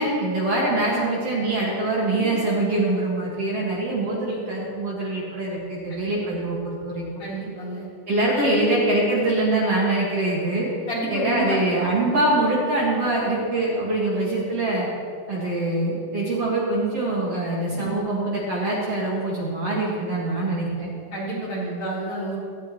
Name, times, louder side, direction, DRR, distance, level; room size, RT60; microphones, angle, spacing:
voice 1, 0.0-7.0 8.1-10.7 11.1-14.9 15.3-20.9, right 2 dB, 45° right, -5 dB, 2.3 m, -24 dB
voice 2, 7.2-7.9 8.3-8.8 10.9-11.6 17.7-17.9 21.1-22.4, equal, 35° left, -7 dB, 4.4 m, -29 dB
17.5 x 13.5 x 3.1 m, 2.3 s
omnidirectional pair, 4.6 m